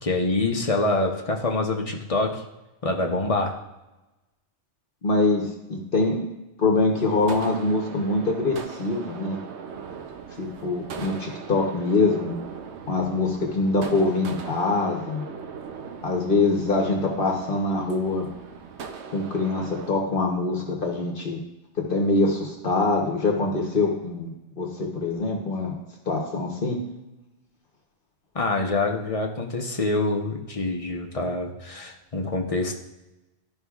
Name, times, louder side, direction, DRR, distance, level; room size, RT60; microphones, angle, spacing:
voice 1, 0.0-2.4 2.8-3.5 28.3-32.8, left 2 dB, 35° left, 1 dB, 0.8 m, -25 dB
voice 2, 5.0-6.2 6.6-9.4 10.4-12.4 12.9-15.2 16.0-18.3 19.1-21.4 21.9-25.7 26.1-26.8, left 3 dB, 50° left, 0 dB, 1.1 m, -24 dB
sound 1, 6.9-19.9, right 6 dB, 75° right, 1.0 m, -39 dB
13.0 x 5.3 x 2.4 m, 1.0 s
omnidirectional pair, 1.2 m